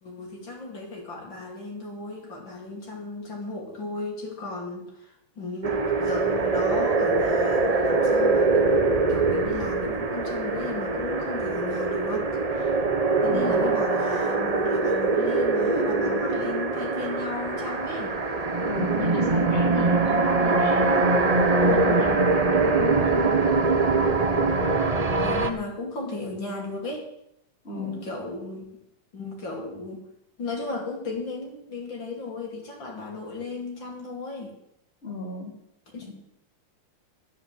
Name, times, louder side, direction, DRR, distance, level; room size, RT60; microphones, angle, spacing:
voice 1, 0.0-12.8 13.2-18.1 22.1-22.4 25.2-27.1 27.7-28.6 29.1-30.0 30.4-34.5 35.9-36.1, left 3 dB, 60° left, 0 dB, 3.0 m, -35 dB
sound 1, 5.6-25.5, right 3 dB, 50° right, 0.4 m, -23 dB
voice 2, 13.3-13.7 18.7-21.1 21.6-23.7 27.6-28.1 35.0-35.5 36.0-36.1, left 3 dB, 30° left, 0 dB, 2.7 m, -35 dB
10.5 x 9.8 x 7.5 m, 0.78 s
omnidirectional pair, 2.4 m